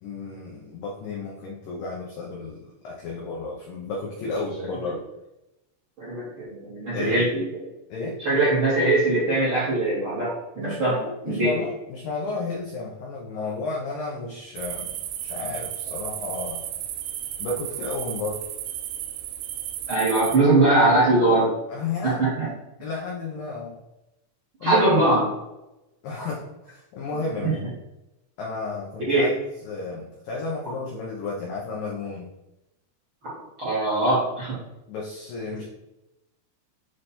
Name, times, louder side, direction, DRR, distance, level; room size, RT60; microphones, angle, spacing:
voice 1, 0.0-5.0 6.9-7.3 7.9-8.2 10.6-14.9 15.2-16.6 17.4-18.4 21.7-22.2 22.8-23.8 24.6-24.9 26.0-27.8 28.4-32.3 34.9-35.7, left 3 dB, 85° left, -3 dB, 1.9 m, -32 dB
voice 2, 4.6-4.9 6.0-7.4 8.2-11.0 11.3-11.5 19.9-21.6 22.0-22.5 24.6-25.3 26.2-26.3 27.4-27.5 29.1-29.3 33.6-34.6, right 2 dB, 40° right, -8 dB, 2.0 m, -21 dB
sound 1, 14.6-20.4, right 11 dB, 90° right, 2.3 m, -34 dB
7.9 x 3.3 x 4.3 m, 0.93 s
omnidirectional pair, 5.4 m